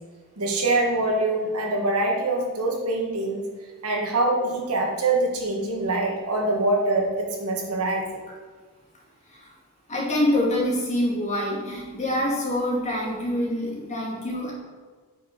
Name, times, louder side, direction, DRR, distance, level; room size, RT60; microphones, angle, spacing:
voice 1, 0.4-3.4 3.8-8.0, right 2 dB, 85° right, 0 dB, 1.7 m, -24 dB
voice 2, 9.9-14.5, left 1 dB, 35° left, -3 dB, 2.4 m, -25 dB
8.1 x 6.1 x 4.7 m, 1.5 s
head